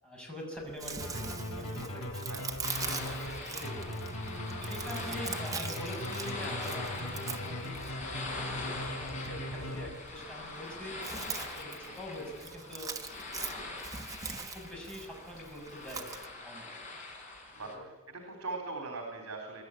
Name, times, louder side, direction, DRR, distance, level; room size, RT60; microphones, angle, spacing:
voice 1, 0.0-2.4 2.8-3.8 4.6-11.0 11.3-12.9 13.4-13.8 14.3-16.7 17.6-17.8 18.2-18.3, equal, 5° left, -2 dB, 6.6 m, -45 dB
Chewing mastication, 0.6-16.3, right 5 dB, 15° right, 1.2 m, -43 dB
sound 1, 1.0-10.3, left 1 dB, 85° left, 5.2 m, -39 dB
sound 2, 2.6-17.7, left 2 dB, 35° left, 5.7 m, -43 dB
voice 2, 17.5-19.6, right 3 dB, 70° right, 2 dB, 3.5 m, -41 dB
23.5 x 12.5 x 9.8 m, 1.2 s
head